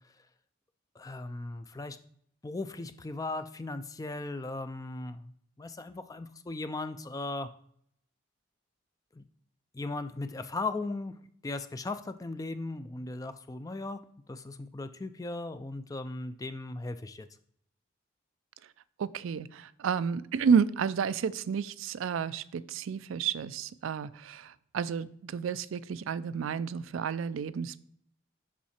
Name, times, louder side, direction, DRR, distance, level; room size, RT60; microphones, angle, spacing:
voice 1, 1.0-2.0 2.4-5.3 5.6-7.5 9.1-9.3 9.7-11.2 11.4-17.3, left 2 dB, 15° left, 11 dB, 0.3 m, -37 dB
voice 2, 19.0-27.8, right 6 dB, 80° right, 16 dB, 0.3 m, -31 dB
7.3 x 5.7 x 4.3 m, 0.67 s
head